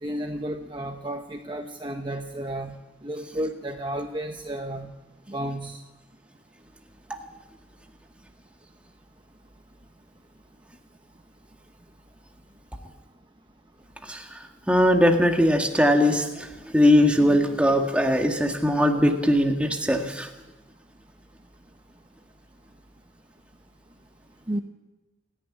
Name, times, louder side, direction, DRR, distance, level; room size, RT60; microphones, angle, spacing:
voice 1, 0.0-4.9 5.3-5.8 24.5-24.6, right 1 dB, 25° right, 5 dB, 0.9 m, -32 dB
voice 2, 14.0-14.4 14.7-20.3, equal, 5° right, 3 dB, 1.7 m, -20 dB
28.0 x 11.0 x 9.8 m, 1.1 s
head